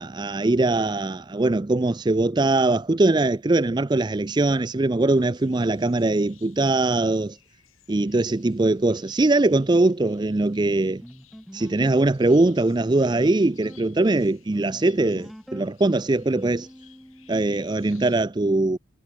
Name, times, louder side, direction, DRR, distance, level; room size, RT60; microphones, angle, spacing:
voice 1, 0.0-7.4 7.9-11.0 11.5-16.7 17.3-18.8, right 2 dB, 20° right, 0.4 m, -21 dB
sound 1, 5.1-18.2, left 13 dB, 85° left, 5.8 m, -57 dB
sound 2, 11.0-18.0, equal, ahead, 1.2 m, -45 dB
head